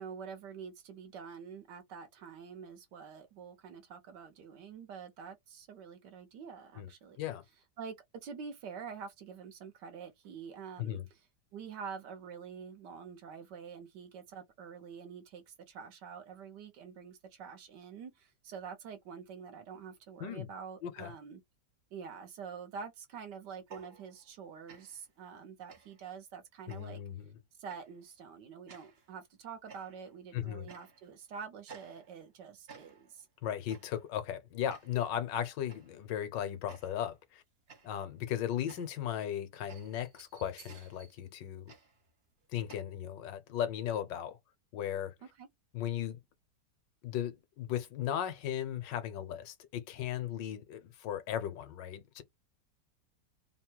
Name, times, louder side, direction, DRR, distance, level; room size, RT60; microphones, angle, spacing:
voice 1, 0.0-7.2 7.8-7.9 8.2-11.2 11.5-21.4 21.9-27.0 27.6-33.3 45.2-45.5, right 6 dB, 70° right, 1.5 m, -47 dB
voice 2, 20.8-21.1 26.7-27.3 30.3-30.7 33.4-37.4 37.8-41.7 42.5-44.4 44.7-45.1 45.7-46.2 47.0-52.2, left 10 dB, 75° left, 1.4 m, -36 dB
sound 1, 23.6-24.4 24.7-25.1 25.7-26.1 26.7-27.1 27.7-28.0 28.7-29.1 29.7-30.2 30.7-31.2 31.7-32.4 32.7-33.2 33.7-34.1 34.7-35.1 35.7-36.0 36.7-37.2 37.7-42.8, right 5 dB, 45° right, 0.8 m, -56 dB
3.6 x 2.2 x 4.4 m
omnidirectional pair, 2.0 m